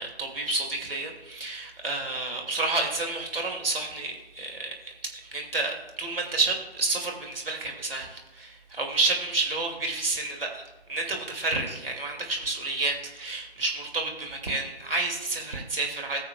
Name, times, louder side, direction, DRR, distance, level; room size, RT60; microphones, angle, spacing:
voice 1, 0.0-10.6 10.9-16.2, right 3 dB, 60° right, 1 dB, 2.5 m, -30 dB
19.0 x 7.0 x 2.4 m, 1.1 s
figure-of-eight pair, 150°, 32 cm